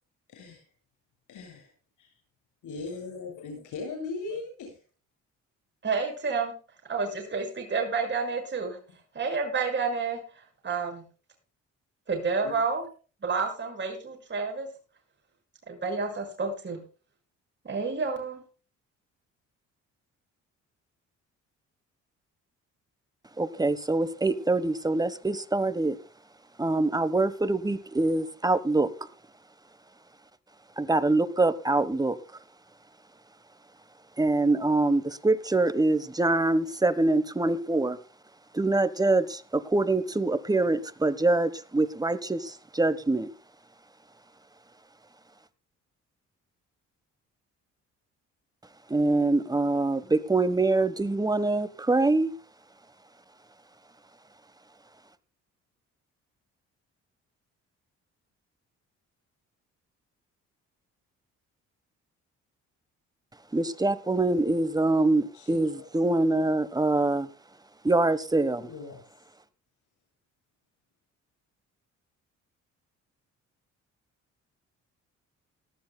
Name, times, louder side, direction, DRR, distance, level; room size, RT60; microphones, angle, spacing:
voice 1, 0.3-0.6 1.3-1.7 2.0-2.1 2.6-4.8 12.4-12.6 65.3-65.9 68.5-69.0, left 4 dB, 80° left, 7.7 m, -39 dB
voice 2, 5.8-6.5 6.9-8.8 9.1-10.2 10.6-11.0 12.1-12.8 13.2-14.7 15.7-16.8 17.6-18.4, right 4 dB, 35° right, 6.5 m, -29 dB
voice 3, 23.4-26.0 26.6-28.9 30.8-32.2 34.2-38.0 38.5-43.3 48.9-52.3 63.5-67.3 67.8-68.7, right 2 dB, 15° right, 1.3 m, -24 dB
18.5 x 13.5 x 2.3 m
cardioid pair, 90°, 30 cm